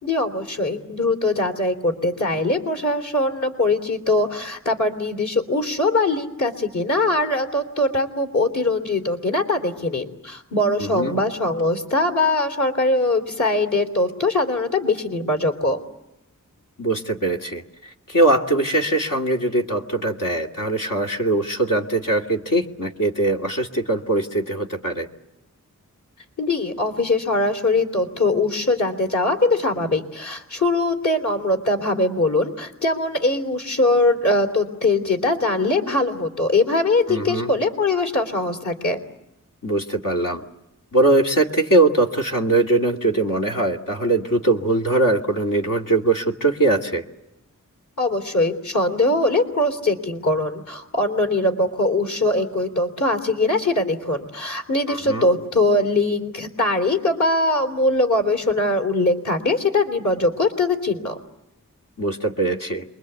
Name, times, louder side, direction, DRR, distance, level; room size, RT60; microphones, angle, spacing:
voice 1, 0.0-15.8 26.4-39.0 48.0-61.2, left 2 dB, 65° left, 3 dB, 3.6 m, -21 dB
voice 2, 10.8-11.1 16.8-17.6 18.1-25.1 37.1-37.5 39.6-40.4 40.9-47.0 54.9-55.2 62.0-62.8, right 2 dB, 80° left, 1 dB, 2.4 m, -21 dB
28.0 x 23.0 x 8.3 m, 0.89 s
wide cardioid pair, 50°, 32 cm